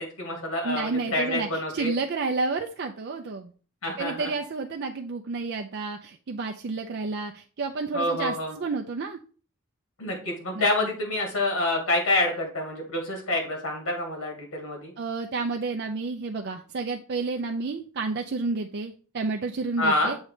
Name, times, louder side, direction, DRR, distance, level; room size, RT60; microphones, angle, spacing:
voice 1, 0.0-1.9 3.8-4.3 7.9-8.5 10.0-14.9 19.8-20.1, left 2 dB, 80° left, 1 dB, 2.5 m, -27 dB
voice 2, 0.6-3.5 4.0-9.2 10.5-10.7 15.0-20.2, right 3 dB, 55° right, 3 dB, 0.5 m, -30 dB
7.2 x 3.2 x 4.8 m, 0.40 s
head